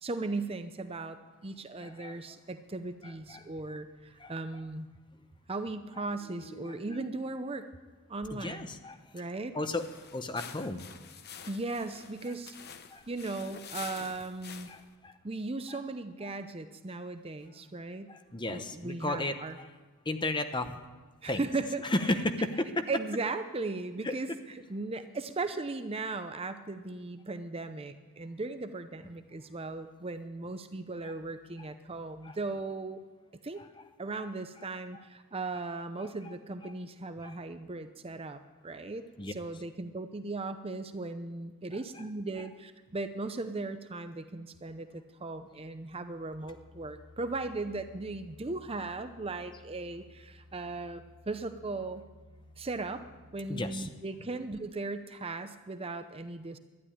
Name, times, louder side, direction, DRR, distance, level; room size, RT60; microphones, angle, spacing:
voice 1, 0.0-4.9 5.5-7.7 8.1-8.7 9.1-9.6 11.5-12.6 13.1-14.7 15.2-18.1 18.5-19.6 21.2-21.9 22.9-24.3 24.7-33.0 33.4-33.6 34.0-52.0 52.6-53.0 53.3-56.6, right 3 dB, 25° right, 9 dB, 0.6 m, -37 dB
voice 2, 1.8-2.2 3.0-3.5 4.2-4.3 6.0-6.1 8.3-9.0 9.5-9.9 10.1-10.8 12.9-13.0 14.7-15.2 15.7-15.8 18.1-19.7 20.1-20.8 21.3-21.4 21.8-22.9 24.0-24.2 31.0-31.1 32.2-32.4 33.6-33.7 36.0-36.3 36.6-36.7 37.2-37.4 39.2-39.3 53.5-53.9, left 2 dB, 20° left, 8 dB, 0.9 m, -34 dB
sound 1, 2.9-5.5 5.8-11.1, left 1 dB, 85° left, 3.4 m, -55 dB
sound 2, 9.7-14.9, left 7 dB, 45° left, 1.0 m, -48 dB
sound 3, 46.3-53.8, left 1 dB, 10° right, 4.1 m, -56 dB
12.0 x 10.5 x 10.0 m, 1.3 s
head